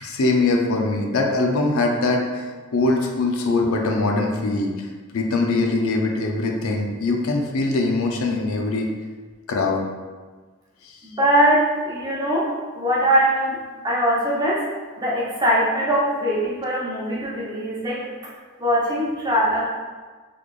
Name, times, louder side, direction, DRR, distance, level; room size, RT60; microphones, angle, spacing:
voice 1, 0.0-4.9 5.1-8.9 9.5-9.8 10.8-11.0, left 2 dB, 85° left, 1 dB, 0.5 m, -22 dB
voice 2, 11.0-14.7 15.0-18.1 18.6-19.6, equal, 20° right, -6 dB, 0.8 m, -21 dB
4.1 x 3.1 x 2.4 m, 1.4 s
head